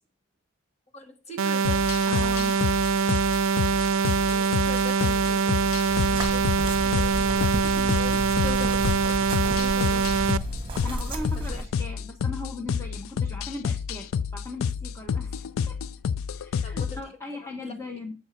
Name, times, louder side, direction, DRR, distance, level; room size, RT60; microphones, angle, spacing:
voice 1, 0.9-1.9 4.3-9.0 9.3-10.1 11.5-11.6 16.6-17.0 17.3-17.7, left 2 dB, 30° left, 1.3 m, -41 dB
sound 1, 1.4-10.4, right 5 dB, 85° right, 0.5 m, -24 dB
sound 2, 1.6-17.0, left 6 dB, 85° left, 0.4 m, -29 dB
voice 2, 2.1-2.6 10.8-15.8 16.3-18.1, left 2 dB, 15° left, 1.0 m, -38 dB
sound 3, 5.9-11.7, right 1 dB, 25° right, 1.2 m, -33 dB
7.5 x 4.5 x 6.6 m
head